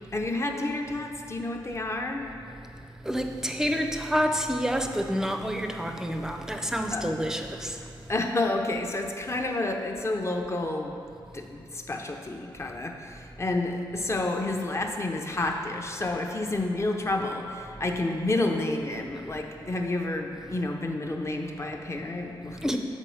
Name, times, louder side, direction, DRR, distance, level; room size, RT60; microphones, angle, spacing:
voice 1, 0.1-2.3 6.9-7.0 8.1-11.0 11.3-22.6, left 2 dB, 30° left, 3 dB, 0.7 m, -30 dB
voice 2, 3.0-7.9 22.6-22.8, equal, 5° right, 4 dB, 0.5 m, -28 dB
7.2 x 4.2 x 5.5 m, 2.4 s
wide cardioid pair, 80°, 9 cm